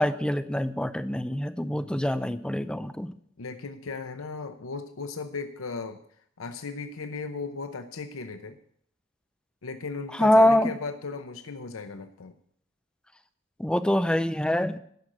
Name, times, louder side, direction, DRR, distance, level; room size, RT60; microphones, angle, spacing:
voice 1, 0.0-3.1 10.1-10.8 13.6-14.8, left 1 dB, 5° left, 11 dB, 0.5 m, -24 dB
voice 2, 1.7-2.0 3.4-6.0 6.4-8.6 9.6-12.3, left 4 dB, 85° left, 8 dB, 0.7 m, -36 dB
10.5 x 6.3 x 8.6 m, 0.66 s
head